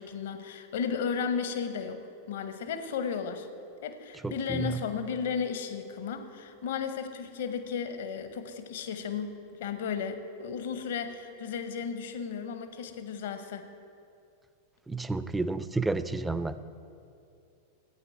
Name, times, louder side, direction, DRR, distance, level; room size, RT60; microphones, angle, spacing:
voice 1, 0.0-2.0 2.3-3.5 3.8-13.7, left 6 dB, 55° left, 9 dB, 0.9 m, -34 dB
voice 2, 4.2-4.7 14.9-16.6, right 3 dB, 10° right, 13 dB, 0.4 m, -31 dB
14.5 x 9.5 x 4.5 m, 2.6 s
figure-of-eight pair, 90°, 0 cm